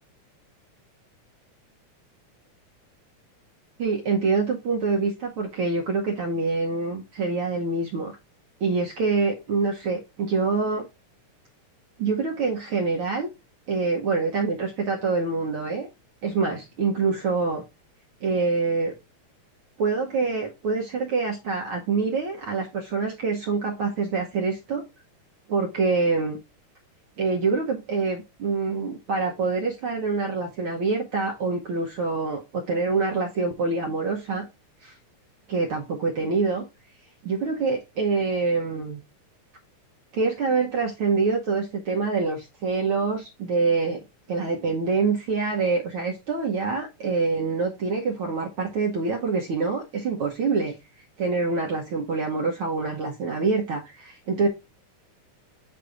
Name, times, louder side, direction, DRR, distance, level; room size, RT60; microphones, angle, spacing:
voice 1, 3.8-8.1 8.6-10.9 12.0-13.3 13.7-15.9 16.2-17.6 18.2-18.9 19.8-24.8 25.5-26.4 27.2-34.5 34.8-34.9 35.5-36.6 37.2-39.0 40.1-44.0 44.3-50.7 51.2-54.5, right 4 dB, 65° right, 0 dB, 1.4 m, -25 dB
8.1 x 2.7 x 4.8 m, 0.25 s
omnidirectional pair, 3.5 m